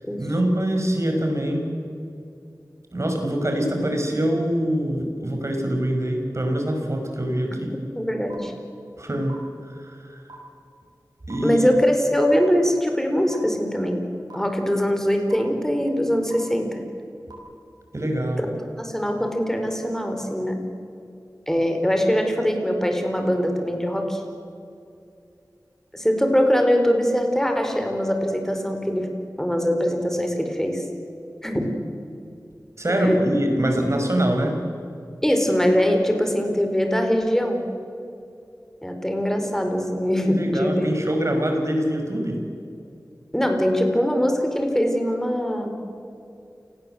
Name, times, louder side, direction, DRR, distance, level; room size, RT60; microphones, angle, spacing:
voice 1, 0.2-1.7 2.9-7.7 9.0-9.4 9.6-10.2 11.3-11.7 17.9-18.5 32.8-34.6 40.3-42.4, right 1 dB, 45° right, 3 dB, 5.5 m, -24 dB
voice 2, 7.9-8.5 11.4-14.0 14.3-16.8 18.4-20.6 21.5-24.2 25.9-29.1 29.4-30.8 31.4-31.7 32.9-33.3 35.2-37.6 38.8-40.9 43.3-45.7, equal, 5° left, 4 dB, 4.4 m, -22 dB
sound 1, 8.3-8.4 9.3-9.4 10.3-10.4 11.3-11.4 12.3-12.4 13.3-13.4 14.3-14.4 15.3-15.4 16.3-16.4 17.3-17.4, right 3 dB, 80° right, 6.5 m, -42 dB
29.0 x 19.5 x 7.9 m, 2.6 s
wide cardioid pair, 65°, 7 cm